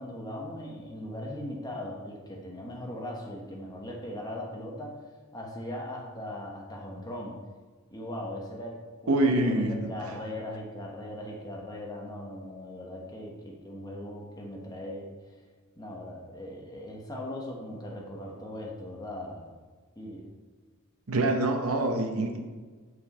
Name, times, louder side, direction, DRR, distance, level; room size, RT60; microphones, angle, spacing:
voice 1, 0.0-5.0 5.3-7.4 7.9-15.1 15.8-19.5 20.0-20.3, left 1 dB, 20° left, -1 dB, 1.2 m, -39 dB
voice 2, 9.1-9.7 21.1-22.4, right 2 dB, 80° right, 4 dB, 0.9 m, -25 dB
8.4 x 4.7 x 4.2 m, 1.4 s
head